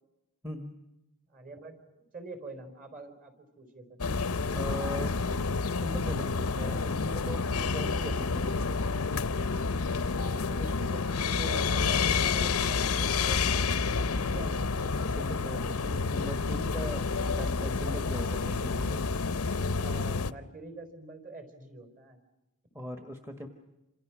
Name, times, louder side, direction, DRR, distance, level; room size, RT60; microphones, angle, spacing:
voice 1, 1.3-1.8 2.1-4.0 10.3-14.5 19.8-22.2, right 2 dB, 35° right, 7 dB, 4.6 m, -45 dB
sound 1, 4.0-20.3, left 4 dB, 75° left, 0.8 m, -29 dB
voice 2, 4.5-5.5 5.8-8.6 14.8-19.1 22.7-23.5, equal, 10° right, 4 dB, 1.4 m, -40 dB
28.0 x 27.5 x 6.2 m, 0.99 s
head